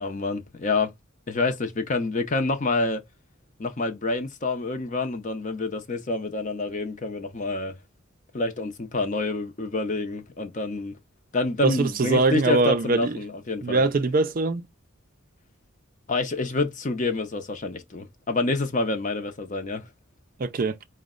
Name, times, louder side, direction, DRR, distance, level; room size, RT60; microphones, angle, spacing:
voice 1, 0.0-0.9 1.3-3.0 3.6-7.8 8.3-11.0 11.3-13.9 16.1-19.9, left 2 dB, 35° left, 0.6 m, -27 dB
voice 2, 11.6-13.2 13.6-14.7 20.4-20.8, right 3 dB, 40° right, 0.4 m, -22 dB
5.0 x 2.1 x 3.7 m
head